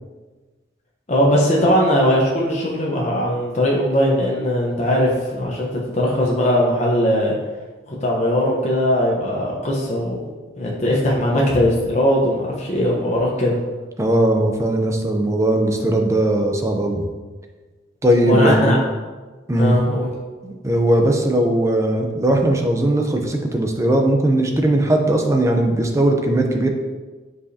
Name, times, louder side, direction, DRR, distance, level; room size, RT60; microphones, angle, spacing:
voice 1, 1.1-7.3 7.9-10.2 10.6-13.6 18.3-18.8 19.6-20.1, equal, 35° left, -3 dB, 0.9 m, -19 dB
voice 2, 14.0-17.0 18.0-18.7 19.5-19.8 20.4-26.7, right 1 dB, 15° right, 3 dB, 0.6 m, -18 dB
7.5 x 4.9 x 2.8 m, 1.3 s
head